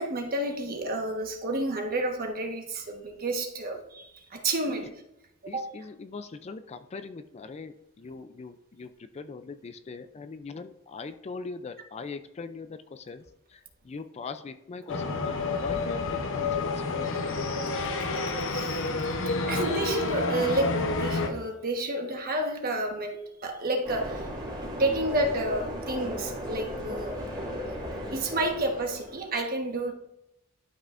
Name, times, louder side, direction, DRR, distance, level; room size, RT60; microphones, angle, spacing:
voice 1, 0.0-4.9 5.5-5.6 18.4-24.3 24.6-27.2 27.6-27.8 28.1-29.9, right 2 dB, 40° right, 2 dB, 1.3 m, -30 dB
voice 2, 5.5-17.1, left 4 dB, 30° left, 9 dB, 0.3 m, -41 dB
sound 1, 14.9-21.3, left 3 dB, 60° left, 0.8 m, -29 dB
sound 2, 23.8-29.4, equal, 20° right, 2.4 m, -36 dB
12.0 x 5.5 x 2.5 m, 0.84 s
head